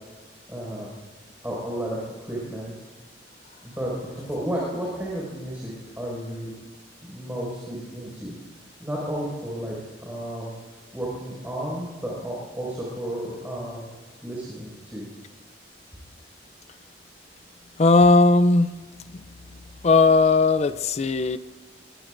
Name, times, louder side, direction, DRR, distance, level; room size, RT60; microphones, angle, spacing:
voice 1, 0.5-0.9 1.4-2.7 3.6-6.5 7.0-8.3 8.8-10.5 10.9-13.8 14.2-15.1, right 1 dB, 10° right, -5 dB, 5.5 m, -32 dB
voice 2, 17.8-18.7 19.1-19.2 19.8-21.4, left 3 dB, 35° left, 13 dB, 0.5 m, -17 dB
24.0 x 23.0 x 2.6 m, 1.3 s
head